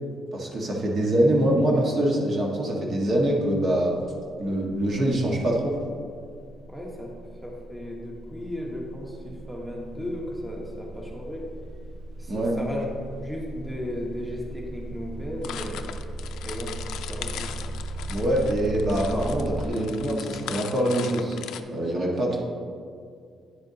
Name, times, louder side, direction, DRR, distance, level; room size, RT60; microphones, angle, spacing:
voice 1, 0.3-3.9 4.4-5.7 12.3-12.5 18.1-21.4 21.7-22.4, right 1 dB, 50° right, -1 dB, 1.6 m, -24 dB
sound 1, 3.1-3.3 3.5-19.7, right 1 dB, 80° right, 1.5 m, -38 dB
voice 2, 6.7-7.1 7.4-11.4 12.2-15.9 16.4-16.7 17.1-17.5, equal, 5° right, -2 dB, 1.2 m, -35 dB
sound 2, 15.4-21.6, left 9 dB, 85° left, 0.4 m, -39 dB
9.6 x 6.9 x 2.8 m, 2.2 s
cardioid pair, 90°, 0 cm